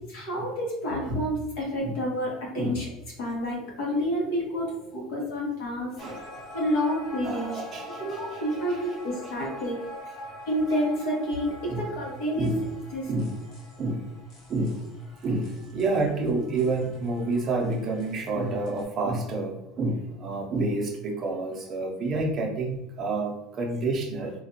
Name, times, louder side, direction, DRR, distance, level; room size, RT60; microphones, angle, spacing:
voice 1, 0.1-2.9 3.2-5.9 6.5-7.5 8.0-9.8 10.5-12.5 12.9-13.1, equal, 75° left, -2 dB, 1.1 m, -29 dB
voice 2, 5.8-6.4 7.2-8.4 8.7-8.9 9.2-9.3 11.7-11.9 12.4-12.7 13.1-13.4 13.8-14.1 14.5-14.8 15.2-24.3, right 2 dB, 30° right, 0 dB, 0.6 m, -29 dB
sound 1, 6.0-18.8, left 1 dB, 45° left, 0.7 m, -44 dB
2.5 x 2.3 x 2.7 m, 0.86 s
cardioid pair, 150°, 0 cm